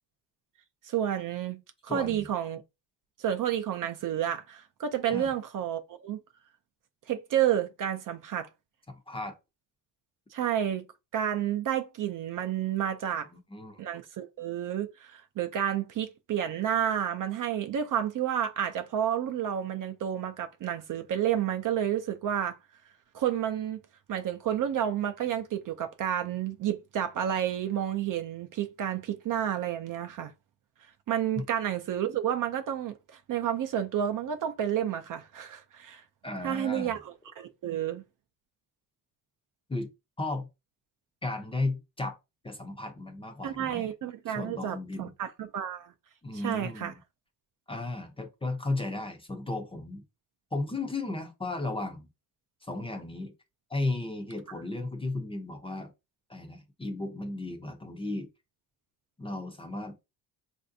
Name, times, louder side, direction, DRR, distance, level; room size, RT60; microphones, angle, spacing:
voice 1, 0.8-2.6 3.2-6.2 7.1-8.5 10.3-10.8 11.1-13.3 13.8-22.6 23.1-23.8 24.1-30.3 31.1-36.0 36.4-38.0 43.4-45.9 46.3-46.9, right 10 dB, 50° right, 0.4 m, -30 dB
voice 2, 1.9-2.3 5.1-5.3 8.9-9.4 13.3-13.8 31.4-31.5 36.2-36.9 39.7-39.9 40.2-40.5 41.2-42.2 42.4-43.9 44.3-45.1 46.2-47.0 47.7-50.0 50.5-52.1 52.6-53.3 53.7-55.9 56.3-58.3 59.2-60.0, left 2 dB, 15° left, 0.5 m, -35 dB
3.2 x 2.6 x 2.6 m
cardioid pair, 110°, 43 cm